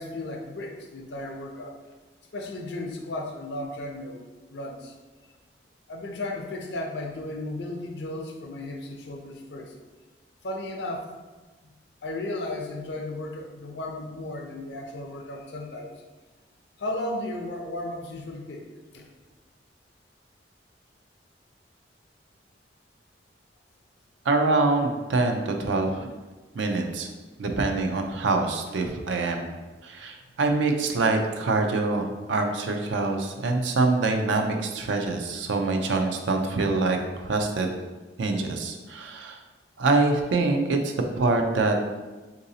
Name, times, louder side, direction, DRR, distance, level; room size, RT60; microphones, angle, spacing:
voice 1, 0.0-1.8 2.3-4.2 4.5-4.9 5.9-9.7 10.4-11.1 11.6-11.7 12.0-16.0 16.8-18.7 18.9-19.1 26.6-26.7, left 1 dB, 65° left, 2 dB, 0.5 m, -35 dB
voice 2, 24.3-25.9 26.5-27.1 27.4-29.5 29.8-37.7 38.2-39.4 39.8-41.9, right 3 dB, 90° right, 4 dB, 0.4 m, -25 dB
3.8 x 2.6 x 2.7 m, 1.2 s
head